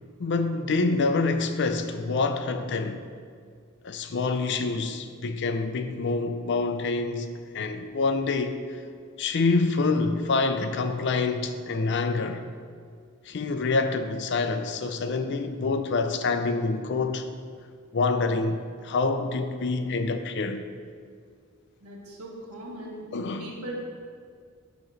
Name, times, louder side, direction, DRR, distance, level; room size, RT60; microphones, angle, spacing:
voice 1, 0.2-3.0 3.8-7.3 7.5-8.8 9.2-12.5 13.3-17.3 17.9-20.6 23.1-23.5, left 3 dB, 55° left, 0.5 m, -26 dB
voice 2, 21.8-23.1 23.4-23.7, right 1 dB, 85° right, 1.5 m, -40 dB
9.0 x 3.1 x 6.2 m
head